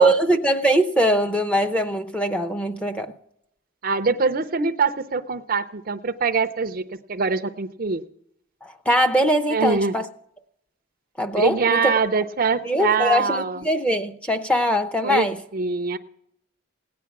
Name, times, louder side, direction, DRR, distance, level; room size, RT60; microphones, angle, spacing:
voice 1, 0.0-3.1 8.6-10.1 11.2-11.9 12.6-15.4, equal, 5° left, 0.6 m, -21 dB
voice 2, 3.8-6.8 7.1-8.0 9.5-9.9 11.3-13.6 15.0-15.3 15.5-16.0, right 5 dB, 40° right, 0.5 m, -23 dB
17.5 x 9.4 x 5.9 m
head